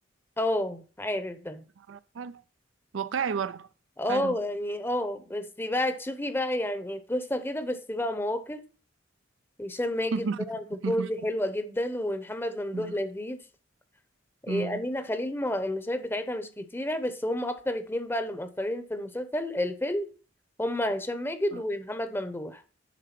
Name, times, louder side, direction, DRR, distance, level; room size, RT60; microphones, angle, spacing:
voice 1, 0.4-1.6 4.0-8.6 9.6-13.4 14.4-20.1 20.6-22.6, left 1 dB, 10° left, 0.8 m, -30 dB
voice 2, 1.9-2.4 2.9-3.7 4.1-4.4 10.1-10.5 10.8-11.1 12.7-13.0 14.5-14.8 21.5-21.6, right 5 dB, 75° right, 0.4 m, -32 dB
10.0 x 3.8 x 5.9 m
head